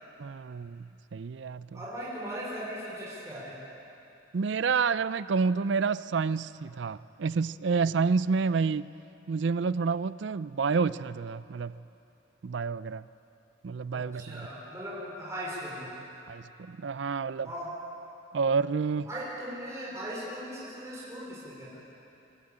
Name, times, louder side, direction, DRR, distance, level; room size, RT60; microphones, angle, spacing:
voice 1, 0.2-1.7 4.3-8.9 9.3-11.7 12.4-13.0 13.6-14.5 16.3-17.5 18.3-19.1, right 5 dB, 65° right, 17 dB, 0.4 m, -29 dB
voice 2, 1.7-3.5 13.9-15.9 17.4-17.7 19.1-21.8, equal, 15° right, -7 dB, 4.7 m, -38 dB
25.5 x 13.5 x 8.7 m, 2.9 s
head